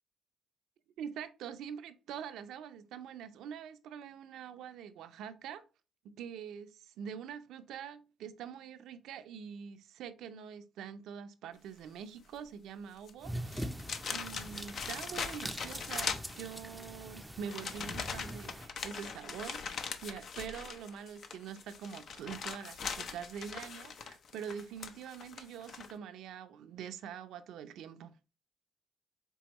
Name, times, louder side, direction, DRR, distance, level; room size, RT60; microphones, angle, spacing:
voice 1, 1.0-5.6 6.0-13.7 14.1-28.2, right 8 dB, 85° right, 0.5 m, -45 dB
sound 1, 13.0-13.1 13.5-16.9 17.5-25.9, left 6 dB, 60° left, 0.6 m, -41 dB
sound 2, 13.2-18.7, equal, 5° right, 0.5 m, -43 dB
4.5 x 3.5 x 3.0 m
cardioid pair, 90°, 0 cm